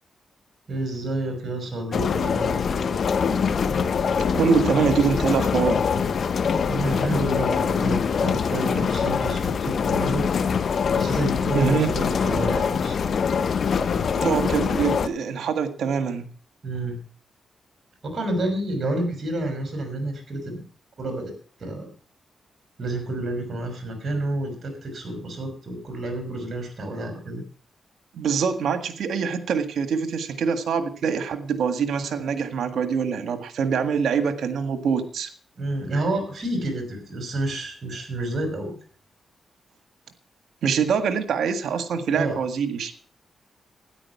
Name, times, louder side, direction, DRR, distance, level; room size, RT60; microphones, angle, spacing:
voice 1, 0.7-2.9 6.7-10.2 10.6-13.0 16.6-17.0 18.0-20.6 21.0-21.3 21.6-21.9 22.8-27.4 35.6-38.8 42.1-42.4, right 1 dB, 50° right, 5 dB, 5.9 m, -29 dB
sound 1, 1.9-15.1, left 6 dB, 65° left, 1.0 m, -24 dB
voice 2, 4.3-5.8 11.5-11.9 14.2-16.3 28.1-35.3 40.6-43.1, right 6 dB, 80° right, 9 dB, 1.7 m, -24 dB
13.0 x 10.0 x 5.8 m, 0.44 s
cardioid pair, 65°, 0 cm